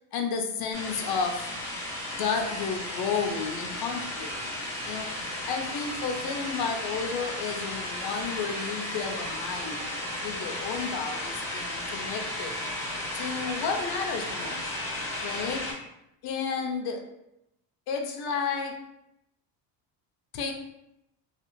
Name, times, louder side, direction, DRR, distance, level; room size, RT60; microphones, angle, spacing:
voice 1, 0.1-1.5 2.2-4.5 4.8-5.1 5.4-9.9 10.2-12.6 13.1-14.8 15.2-15.7 16.2-17.0 17.9-18.8 20.3-20.5, left 5 dB, 60° left, 4 dB, 0.6 m, -32 dB
sound 1, 0.7-15.7, left 1 dB, 5° left, 0.8 m, -34 dB
2.4 x 2.4 x 3.0 m, 0.83 s
cardioid pair, 125°, 43 cm